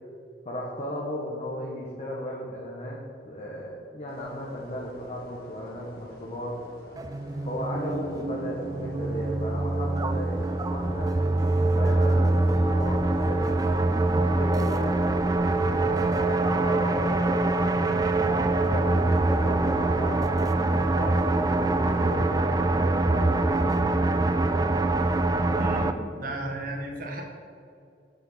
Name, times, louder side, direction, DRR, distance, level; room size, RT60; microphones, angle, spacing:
voice 1, 0.4-3.0 3.2-6.6 7.5-11.1 11.5-13.4 14.0-15.1 15.7-17.7 18.2-23.8, equal, 35° left, -4 dB, 1.2 m, -35 dB
sound 1, 4.1-22.1, left 1 dB, 60° left, 1.8 m, -49 dB
sound 2, 7.0-25.9, right 2 dB, 20° right, 0.3 m, -24 dB
voice 2, 25.5-27.2, right 1 dB, 50° right, 1 dB, 1.4 m, -34 dB
7.1 x 6.6 x 5.6 m, 2.5 s
head